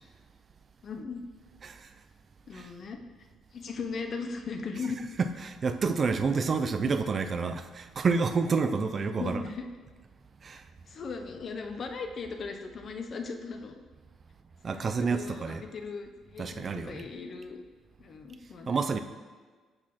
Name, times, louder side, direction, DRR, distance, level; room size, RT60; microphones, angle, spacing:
voice 1, 0.8-1.3 2.5-3.0 3.5-5.0 6.8-6.9 9.2-9.6 10.9-13.8 14.6-17.6 18.0-18.8, left 4 dB, 40° left, 5 dB, 0.5 m, -38 dB
voice 2, 5.2-9.4 10.4-10.6 14.6-15.6 16.4-17.1 18.7-19.0, right 4 dB, 35° right, 9 dB, 0.3 m, -29 dB
6.4 x 6.1 x 3.0 m, 1.4 s
cardioid pair, 145°, 0 cm